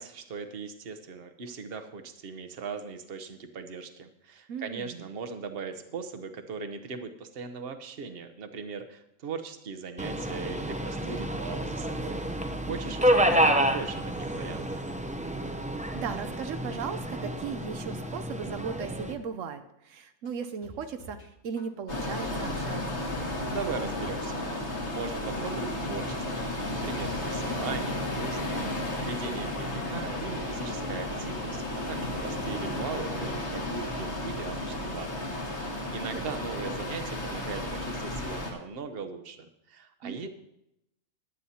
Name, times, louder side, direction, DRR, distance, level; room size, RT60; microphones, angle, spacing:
voice 1, 0.0-12.2 12.6-14.9 23.4-40.3, right 5 dB, 50° right, 8 dB, 1.1 m, -39 dB
voice 2, 4.5-5.0 12.9-13.5 15.9-23.1 36.1-36.3 40.0-40.3, right 6 dB, 80° right, 8 dB, 1.1 m, -37 dB
Subway metro underground, 10.0-19.1, right 1 dB, 10° right, 0.5 m, -29 dB
sound 1, 20.2-21.3 21.6-22.2 22.7-22.8 23.2-24.3 24.6-25.2 25.7-25.8 26.2-27.3 27.6-28.2 28.5-28.6, left 1 dB, 75° left, 1.8 m, -50 dB
sound 2, 21.9-38.5, left 1 dB, 60° left, 2.4 m, -33 dB
15.5 x 11.0 x 2.8 m, 0.83 s
omnidirectional pair, 1.3 m